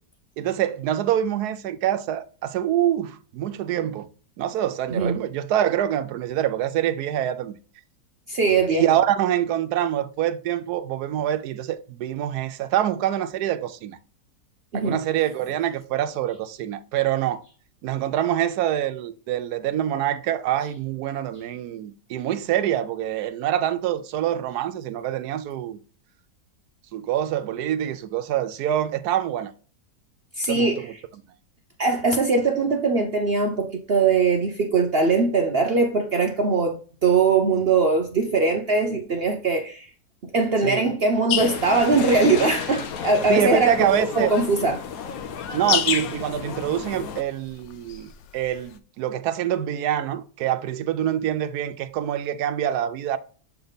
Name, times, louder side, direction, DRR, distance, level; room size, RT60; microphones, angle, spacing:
voice 1, 0.4-4.1 4.4-7.6 8.7-14.0 14.7-17.4 17.8-25.8 26.9-29.5 30.5-30.9 40.6-40.9 43.3-44.3 45.5-53.2, right 11 dB, 75° right, 1.0 m, -25 dB
voice 2, 8.3-9.0 14.7-15.0 30.4-30.9 31.8-39.9 40.2-44.8, right 3 dB, 55° right, 0.6 m, -21 dB
sound 1, 41.3-48.7, left 9 dB, 85° left, 0.6 m, -31 dB
sound 2, 41.4-47.2, left 7 dB, 65° left, 1.1 m, -34 dB
7.1 x 3.3 x 4.0 m
omnidirectional pair, 1.9 m